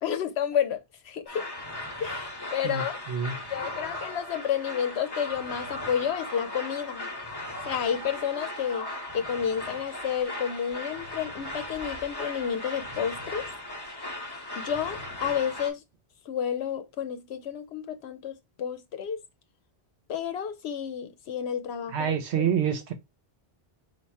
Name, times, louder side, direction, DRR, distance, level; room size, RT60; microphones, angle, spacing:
voice 1, 0.0-1.5 2.0-3.0 3.5-7.1 7.7-13.5 14.5-15.8 16.3-19.2 20.1-22.4, left 8 dB, 75° left, 0.8 m, -31 dB
sound 1, 1.3-15.7, left 1 dB, 25° left, 0.9 m, -37 dB
voice 2, 21.9-22.9, right 8 dB, 80° right, 1.0 m, -26 dB
4.1 x 2.4 x 4.6 m
omnidirectional pair, 1.1 m